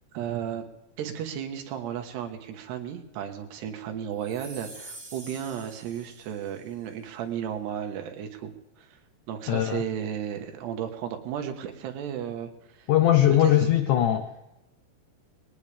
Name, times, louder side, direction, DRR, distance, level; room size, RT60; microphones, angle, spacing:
voice 1, 0.1-0.7 1.0-8.5 8.8-9.0 9.3-12.9 13.4-13.7, right 9 dB, 80° right, 5 dB, 3.5 m, -34 dB
sound 1, 4.2-6.7, right 2 dB, 20° right, 3.3 m, -46 dB
voice 2, 9.5-9.8 12.9-14.5, left 12 dB, 80° left, 7 dB, 1.7 m, -21 dB
21.0 x 18.5 x 3.4 m, 0.94 s
omnidirectional pair, 4.8 m